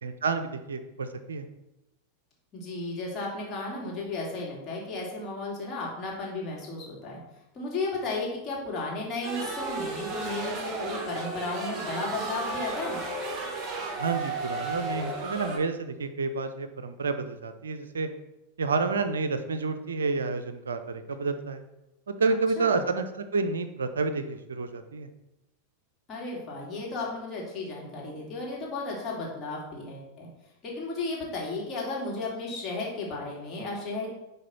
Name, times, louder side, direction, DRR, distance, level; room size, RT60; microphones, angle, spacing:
voice 1, 0.0-1.5 14.0-18.1 18.6-21.6 22.1-25.1, right 4 dB, 70° right, 10 dB, 0.5 m, -29 dB
voice 2, 2.5-7.2 7.5-13.0 22.6-22.8 26.1-30.3 30.6-34.1, left 3 dB, 25° left, -4 dB, 2.5 m, -34 dB
sound 1, 9.2-15.6, right 3 dB, 25° right, 1.3 m, -34 dB
10.0 x 3.5 x 4.2 m, 0.94 s
figure-of-eight pair, 90°, 0 cm